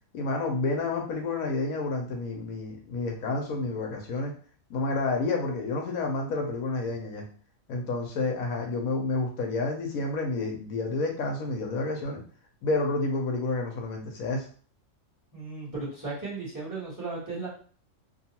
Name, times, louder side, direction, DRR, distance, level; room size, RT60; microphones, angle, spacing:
voice 1, 0.1-4.3 4.7-7.2 7.7-12.2 12.6-14.5, left 3 dB, 75° left, 1 dB, 1.1 m, -29 dB
voice 2, 15.3-17.5, right 3 dB, 15° right, -6 dB, 1.1 m, -35 dB
2.8 x 2.3 x 2.8 m, 0.43 s
omnidirectional pair, 1.5 m